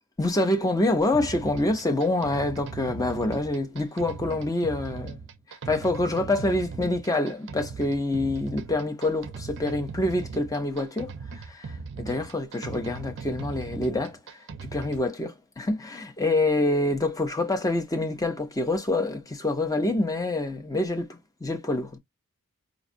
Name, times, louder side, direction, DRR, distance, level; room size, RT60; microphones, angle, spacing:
voice 1, 0.2-5.2 5.7-14.2 14.6-22.0, left 2 dB, 15° left, 0.7 m, -26 dB
sound 1, 1.1-15.1, right 4 dB, 55° right, 0.5 m, -39 dB
5.1 x 2.3 x 2.6 m
head